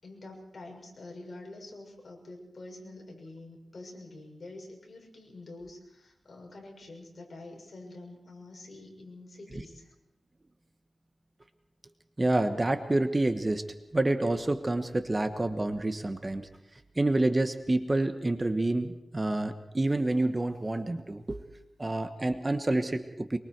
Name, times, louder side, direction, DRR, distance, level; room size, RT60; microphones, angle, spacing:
voice 1, 0.0-9.9, left 2 dB, 55° left, 1 dB, 6.2 m, -47 dB
voice 2, 12.2-13.6 13.9-16.5 16.9-21.4 21.8-23.4, right 2 dB, 25° right, 8 dB, 1.2 m, -28 dB
24.5 x 23.5 x 4.7 m, 0.90 s
wide cardioid pair, 95°, 0 cm